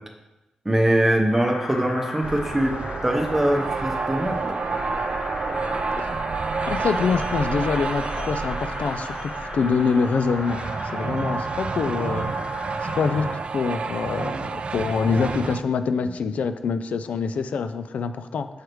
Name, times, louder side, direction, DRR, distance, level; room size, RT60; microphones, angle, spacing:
voice 1, 0.6-2.7 3.0-4.5, right 1 dB, 15° right, 3 dB, 0.8 m, -22 dB
sound 1, 1.3-13.4, left 2 dB, 70° left, 0.7 m, -36 dB
sound 2, 2.2-15.6, right 4 dB, 55° right, 0.3 m, -29 dB
voice 2, 6.7-12.3 12.8-18.5, left 5 dB, 90° left, 10 dB, 0.3 m, -25 dB
6.4 x 4.7 x 3.1 m, 1.0 s
wide cardioid pair, 90°, 2 cm